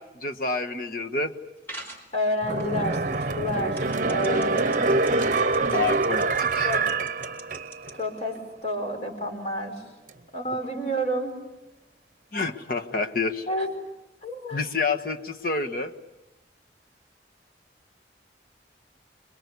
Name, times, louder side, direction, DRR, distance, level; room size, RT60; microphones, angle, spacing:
voice 1, 0.0-1.3 5.7-6.7 12.3-13.5 14.5-15.9, left 3 dB, 55° left, 5 dB, 1.4 m, -28 dB
sound 1, 1.7-2.1 2.6-3.2 3.8-7.9, right 1 dB, 15° left, 4.4 m, -41 dB
voice 2, 2.1-4.9 6.6-6.8 8.0-8.4 8.6-9.8 10.3-11.4 13.5-13.7 14.2-14.6, equal, 35° left, 3 dB, 5.1 m, -29 dB
sound 2, 2.4-8.0 8.4-8.5, right 3 dB, 45° right, 0.9 m, -25 dB
27.0 x 22.5 x 8.4 m, 1.0 s
head